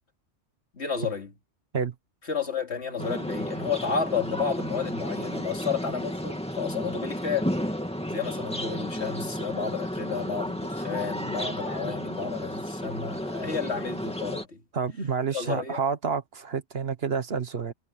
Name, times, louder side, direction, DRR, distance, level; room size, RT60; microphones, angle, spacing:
voice 1, 0.7-1.3 2.3-7.5 8.1-14.6 15.3-15.8, left 6 dB, 65° left, 2.8 m, -31 dB
sound 1, 3.0-14.4, equal, 5° left, 2.4 m, -32 dB
voice 2, 14.7-17.7, right 6 dB, 60° right, 1.4 m, -29 dB
omnidirectional pair, 1.2 m